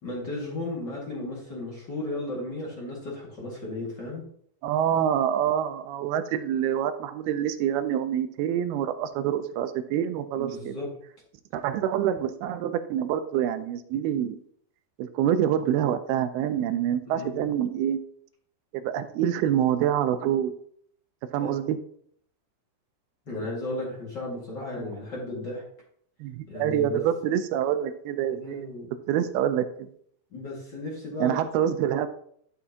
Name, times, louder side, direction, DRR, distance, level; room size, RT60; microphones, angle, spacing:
voice 1, 0.0-4.2 10.4-10.9 17.0-17.4 21.4-21.5 23.2-25.6 26.5-27.1 28.3-28.9 30.3-31.4, left 2 dB, 40° left, -3 dB, 1.6 m, -35 dB
voice 2, 4.6-10.7 11.5-14.4 15.0-18.0 18.7-20.5 21.3-21.8 26.2-28.7 29.1-29.9 31.2-32.1, right 10 dB, 80° right, 9 dB, 2.3 m, -26 dB
12.0 x 6.8 x 2.8 m, 0.65 s
omnidirectional pair, 4.9 m